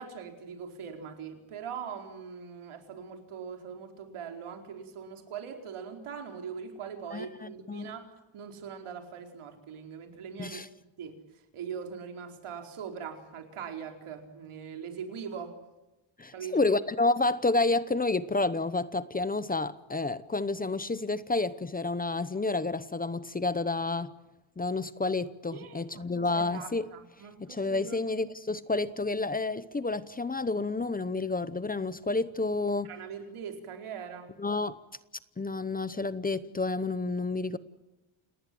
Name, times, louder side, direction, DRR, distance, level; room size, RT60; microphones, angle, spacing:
voice 1, 0.0-10.6 11.0-11.2 11.5-15.6 16.3-16.6 25.5-28.1 32.8-34.3, right 7 dB, 90° right, 4 dB, 4.6 m, -41 dB
voice 2, 7.1-7.9 10.4-10.7 16.2-24.1 24.6-26.9 27.4-32.9 34.4-34.8 35.4-37.6, left 3 dB, 20° left, 15 dB, 0.8 m, -30 dB
29.0 x 19.5 x 7.7 m, 1.0 s
wide cardioid pair, 175°, 48 cm